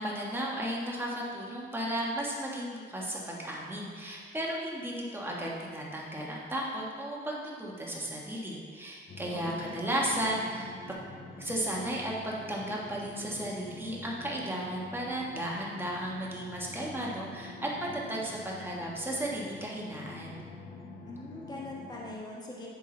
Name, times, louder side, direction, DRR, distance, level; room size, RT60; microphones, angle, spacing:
voice 1, 0.0-11.0 11.4-20.4, right 1 dB, 10° right, -4 dB, 1.6 m, -34 dB
sound 1, 9.1-22.1, left 3 dB, 50° left, 0.9 m, -46 dB
voice 2, 9.3-10.2 21.0-22.7, left 2 dB, 20° left, -4 dB, 1.5 m, -42 dB
10.0 x 3.8 x 3.9 m, 2.1 s
cardioid pair, 90°, 20 cm